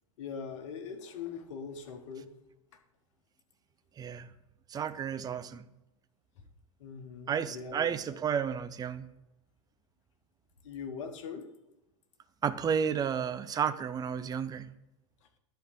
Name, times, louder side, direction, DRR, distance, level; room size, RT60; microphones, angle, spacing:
voice 1, 0.2-2.3 6.8-7.9 10.6-11.5, left 6 dB, 60° left, 1.5 m, -41 dB
voice 2, 4.0-4.3 4.7-5.6 7.3-9.1 12.4-14.7, right 7 dB, 20° right, 0.6 m, -32 dB
10.5 x 4.5 x 7.9 m
figure-of-eight pair, 85°, 18 cm